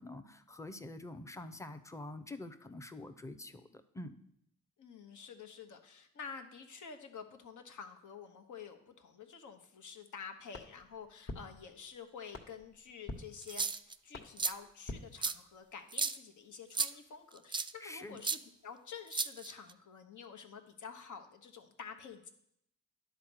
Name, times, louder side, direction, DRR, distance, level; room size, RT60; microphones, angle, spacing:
voice 1, 0.0-4.2 17.8-18.2, left 2 dB, 10° left, 9 dB, 0.8 m, -46 dB
voice 2, 4.8-22.3, left 6 dB, 60° left, 6 dB, 1.2 m, -49 dB
sound 1, 10.5-15.8, left 2 dB, 40° left, 1.4 m, -49 dB
sound 2, 13.4-13.9 14.4-14.5 15.2-15.3 15.9-16.2 16.7-16.9 17.5-17.7 18.2-18.4 19.1-19.7, right 4 dB, 15° right, 0.3 m, -33 dB
10.5 x 4.2 x 6.3 m, 0.73 s
supercardioid pair, 50°, 34 cm